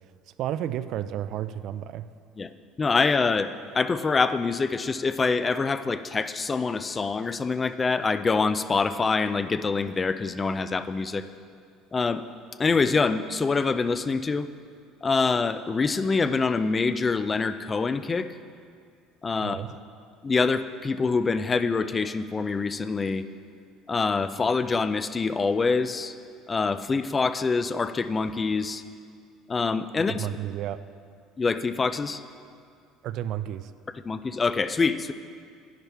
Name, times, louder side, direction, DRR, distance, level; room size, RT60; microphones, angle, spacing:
voice 1, 0.4-2.1 19.4-19.7 30.1-30.9 33.0-33.7, right 11 dB, 55° right, 14 dB, 0.3 m, -32 dB
voice 2, 2.8-11.3 11.9-12.3 12.6-14.5 15.0-18.3 19.2-19.6 20.2-23.3 23.9-26.1 26.5-28.8 29.5-30.3 31.4-32.2 34.1-35.1, left 4 dB, 20° left, 12 dB, 0.3 m, -25 dB
10.5 x 10.5 x 3.4 m, 2.3 s
cardioid pair, 135°, 0 cm